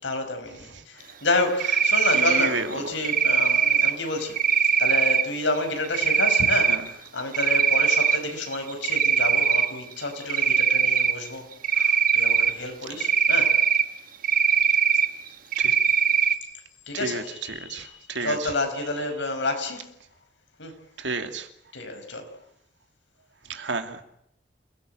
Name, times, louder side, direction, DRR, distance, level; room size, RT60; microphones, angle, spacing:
voice 1, 0.0-11.5 12.1-13.6 16.9-17.9 18.2-19.9 20.6-20.8 21.7-22.3, left 2 dB, 85° left, 6 dB, 5.4 m, -29 dB
Cricket, 1.6-2.5 3.0-3.9 4.4-5.2 5.9-6.8 7.2-8.2 8.5-9.7 10.3-11.1 11.6-12.5 13.0-13.8 14.2-15.1 15.5-16.3, right 7 dB, 50° right, 1.6 m, -20 dB
voice 2, 2.1-3.0 6.7-6.9 11.8-12.0 15.5-15.7 16.9-18.5 21.0-21.5 23.5-24.0, right 3 dB, 85° right, 6 dB, 2.5 m, -32 dB
28.5 x 16.5 x 7.7 m, 0.75 s
head